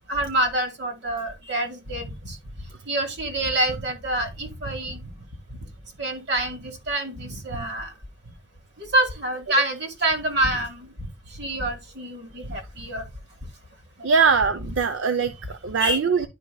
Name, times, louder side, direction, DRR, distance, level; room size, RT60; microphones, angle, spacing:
voice 1, 0.1-2.4 2.9-5.1 6.0-7.9 8.8-10.9 11.3-13.0 14.0-14.1 15.8-16.0, right 1 dB, 65° right, 1.9 m, -27 dB
voice 2, 14.0-16.3, right 5 dB, 80° right, 0.6 m, -22 dB
11.0 x 4.7 x 2.2 m
head